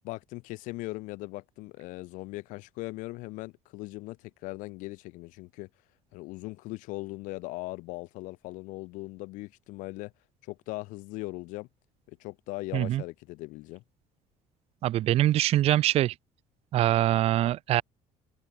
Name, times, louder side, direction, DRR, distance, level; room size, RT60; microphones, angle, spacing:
voice 1, 0.0-5.7 6.1-10.1 10.4-11.7 12.1-13.8, left 21 dB, 90° left, 3.8 m, -39 dB
voice 2, 14.8-16.1 16.7-17.8, right 13 dB, 50° right, 0.6 m, -24 dB
cardioid pair, 145°, 13 cm